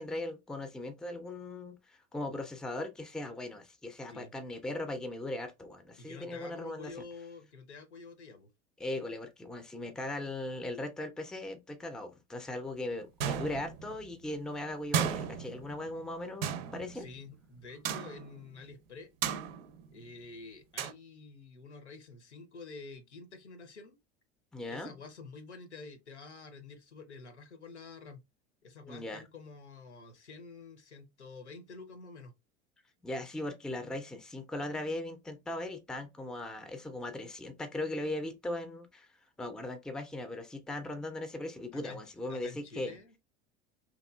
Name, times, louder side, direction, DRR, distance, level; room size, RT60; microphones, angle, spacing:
voice 1, 0.0-6.9 8.8-17.1 24.5-24.9 28.9-29.2 33.0-39.1 39.4-43.0, left 1 dB, ahead, 0.4 m, -39 dB
voice 2, 6.0-8.5 16.9-19.1 19.9-24.0 24.7-28.2 28.6-32.3 41.7-42.0 42.3-43.1, left 4 dB, 85° left, 0.7 m, -49 dB
sound 1, 13.2-14.1 14.9-16.0 16.4-17.3 17.8-18.4 19.2-20.0 20.8-20.9, right 8 dB, 60° right, 0.5 m, -34 dB
2.9 x 2.3 x 2.2 m
figure-of-eight pair, 75°, 34 cm